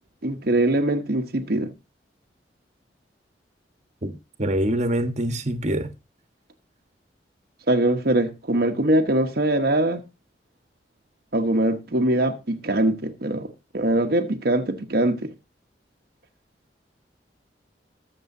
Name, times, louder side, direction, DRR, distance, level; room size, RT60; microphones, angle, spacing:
voice 1, 0.2-1.7 7.7-10.0 11.3-13.5 13.7-15.3, right 1 dB, 60° right, 1.1 m, -22 dB
voice 2, 4.4-5.9, right 1 dB, 40° right, 1.3 m, -24 dB
20.5 x 7.2 x 2.7 m
head